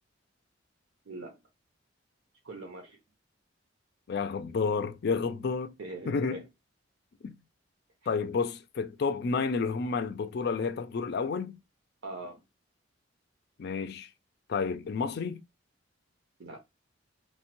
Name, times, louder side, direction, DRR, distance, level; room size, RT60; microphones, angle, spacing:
voice 1, 1.1-1.4 2.4-3.0 5.8-6.4 12.0-12.4 16.4-16.6, right 2 dB, 75° right, 0.6 m, -41 dB
voice 2, 4.1-5.8 6.0-6.4 7.2-7.3 8.1-11.6 13.6-14.1 14.5-15.4, left 5 dB, 55° left, 0.4 m, -30 dB
3.1 x 2.2 x 2.9 m
head